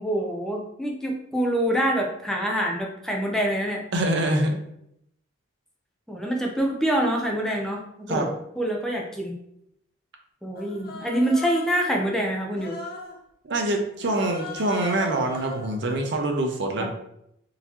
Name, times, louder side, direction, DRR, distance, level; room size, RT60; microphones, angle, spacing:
voice 1, 0.0-3.8 6.1-9.4 10.4-12.8 16.8-16.9, right 1 dB, ahead, 0 dB, 0.5 m, -26 dB
voice 2, 3.9-4.6 8.1-8.3 13.4-16.9, right 1 dB, 55° right, 3 dB, 0.6 m, -25 dB
Human voice, 10.6-11.9 12.5-13.2 14.0-15.8, left 3 dB, 50° left, 0.6 m, -38 dB
3.8 x 2.7 x 2.9 m, 0.77 s
head